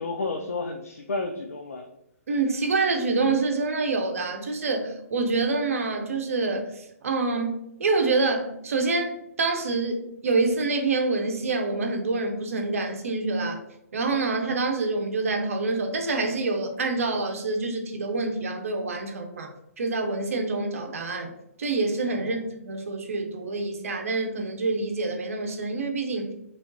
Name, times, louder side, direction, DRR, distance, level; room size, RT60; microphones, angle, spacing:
voice 1, 0.0-1.9 22.2-22.3, left 3 dB, 70° left, 3 dB, 0.4 m, -31 dB
voice 2, 2.3-13.6 13.9-19.5 19.8-21.3 21.6-26.3, right 3 dB, 65° right, 4 dB, 0.7 m, -26 dB
3.5 x 3.2 x 2.7 m, 0.79 s
figure-of-eight pair, 130°, 8 cm